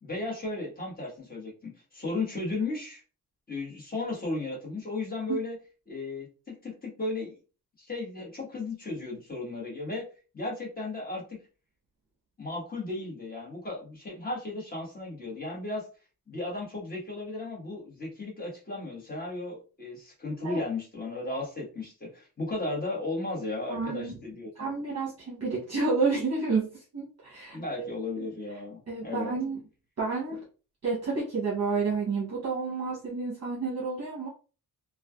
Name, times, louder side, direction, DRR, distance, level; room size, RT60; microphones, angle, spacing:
voice 1, 0.0-3.0 3.5-5.6 5.9-7.4 7.8-10.1 10.3-11.2 12.4-15.9 16.3-24.7 27.5-29.3, left 2 dB, 25° left, -4 dB, 1.2 m, -35 dB
voice 2, 23.7-24.1 24.6-27.6 28.2-28.3 28.9-29.6 30.0-30.4 30.8-34.3, right 4 dB, 40° right, -5 dB, 0.9 m, -30 dB
3.2 x 2.3 x 2.3 m, 0.35 s
wide cardioid pair, 170°, 39 cm